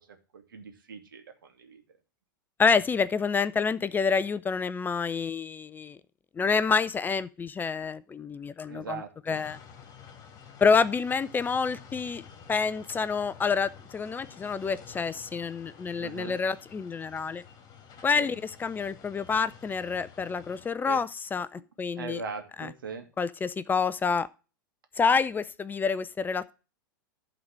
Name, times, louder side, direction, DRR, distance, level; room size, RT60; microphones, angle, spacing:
voice 1, 0.1-1.8 8.7-9.4 16.0-16.4 18.1-18.3 20.9-21.0 22.0-23.0, right 5 dB, 80° right, 2.0 m, -40 dB
voice 2, 2.6-6.0 6.4-9.0 9.3-9.6 10.6-12.2 12.5-17.4 18.0-22.2 22.6-22.7 23.2-24.3 25.0-26.5, left 5 dB, 15° left, 0.4 m, -28 dB
sound 1, 9.3-20.7, left 7 dB, 35° left, 2.2 m, -50 dB
11.5 x 4.0 x 7.4 m
hypercardioid pair, 100°, 11 cm